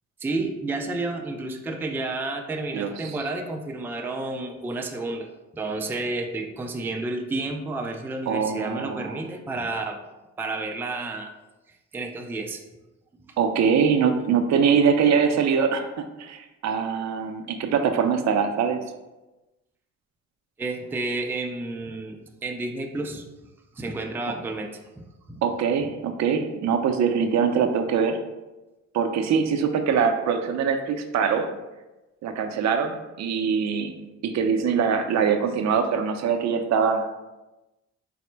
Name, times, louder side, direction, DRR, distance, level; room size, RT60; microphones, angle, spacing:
voice 1, 0.2-5.3 5.5-10.0 10.4-11.3 11.9-12.6 13.3-13.4 20.6-23.2 23.7-25.4, right 2 dB, 5° right, 3 dB, 0.3 m, -31 dB
voice 2, 2.7-3.2 8.3-9.2 13.4-18.8 25.4-28.2 28.9-31.5 32.2-33.9 34.2-37.1, right 6 dB, 65° right, 6 dB, 0.5 m, -23 dB
4.2 x 2.0 x 4.4 m, 1.1 s
cardioid pair, 90°, 30 cm